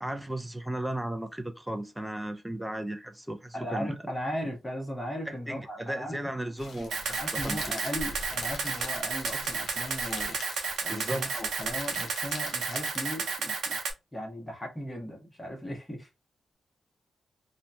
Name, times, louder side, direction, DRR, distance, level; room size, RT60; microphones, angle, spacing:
voice 1, 0.0-3.9 5.3-7.2 7.4-7.6 10.9-11.3, right 1 dB, 5° right, 0.4 m, -35 dB
voice 2, 3.5-6.7 7.1-10.4 10.8-13.8 14.1-16.1, equal, 10° left, 1.0 m, -37 dB
Crackle, 6.6-13.3, left 3 dB, 60° left, 0.7 m, -43 dB
Camera, 6.9-13.9, right 5 dB, 90° right, 0.6 m, -32 dB
2.9 x 2.1 x 2.5 m
wide cardioid pair, 145°, 0 cm